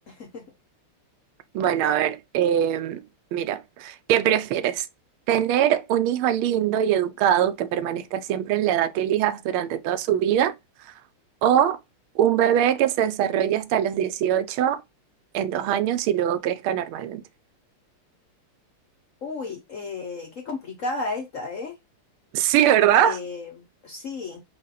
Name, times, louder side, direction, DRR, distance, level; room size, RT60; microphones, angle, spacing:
voice 1, 0.1-0.4 19.2-21.7 22.9-24.4, left 3 dB, 60° left, 0.8 m, -33 dB
voice 2, 1.5-3.0 3.3-4.9 5.3-10.5 11.4-11.8 12.2-14.8 15.3-17.2 22.3-23.2, right 10 dB, 80° right, 1.4 m, -22 dB
5.0 x 2.5 x 4.0 m
omnidirectional pair, 2.4 m